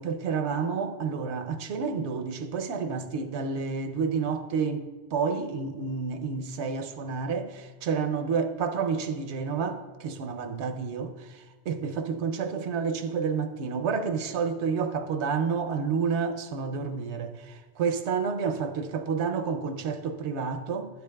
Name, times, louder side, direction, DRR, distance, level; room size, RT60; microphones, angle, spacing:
voice 1, 0.0-4.8 5.1-20.9, right 5 dB, 75° right, 0.9 m, -30 dB
12.0 x 6.9 x 2.2 m
omnidirectional pair, 1.2 m